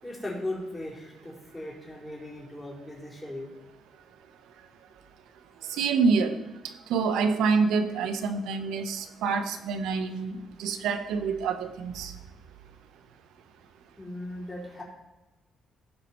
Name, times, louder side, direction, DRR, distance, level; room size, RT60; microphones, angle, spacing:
voice 1, 0.0-3.5 14.0-14.8, left 1 dB, 10° left, -5 dB, 4.1 m, -38 dB
voice 2, 5.7-6.3 6.9-12.1, right 5 dB, 85° right, 9 dB, 0.9 m, -27 dB
15.5 x 5.4 x 4.4 m, 1.1 s
cardioid pair, 90°, 0 cm